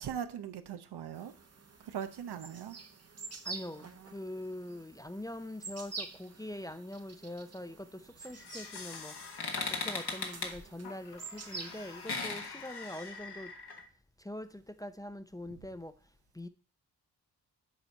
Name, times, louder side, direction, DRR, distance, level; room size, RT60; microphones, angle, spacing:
voice 1, 0.0-1.3 1.8-2.8, right 8 dB, 75° right, 0.7 m, -40 dB
sound 1, 1.1-12.1, right 4 dB, 40° right, 1.0 m, -48 dB
voice 2, 3.4-9.1 9.8-13.5 14.2-15.9 16.3-16.5, left 1 dB, 10° left, 0.6 m, -43 dB
sound 2, 8.2-13.8, left 4 dB, 75° left, 1.5 m, -40 dB
7.2 x 4.4 x 5.3 m
cardioid pair, 60°, 40 cm